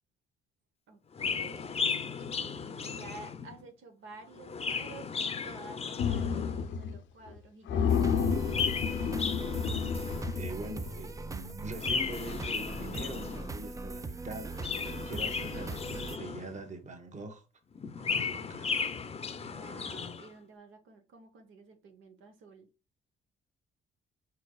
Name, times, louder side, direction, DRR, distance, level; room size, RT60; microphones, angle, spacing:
voice 1, 0.9-1.9 2.2-8.3 14.9-15.3 19.3-22.7, right 3 dB, 80° right, 1.1 m, -52 dB
Chirp tweet, 1.1-3.6 4.3-6.7 8.3-10.5 11.7-13.6 14.4-16.7 17.7-20.3, left 5 dB, 30° left, 0.6 m, -35 dB
sound 1, 6.0-7.0 7.3-7.4 7.7-11.1, left 7 dB, 75° left, 0.6 m, -31 dB
sound 2, 7.9-16.2, right 3 dB, 15° right, 0.4 m, -40 dB
voice 2, 10.4-14.5 14.8-17.4 18.0-18.8, right 2 dB, 35° right, 1.3 m, -43 dB
4.8 x 4.6 x 2.3 m
cardioid pair, 90°, 20 cm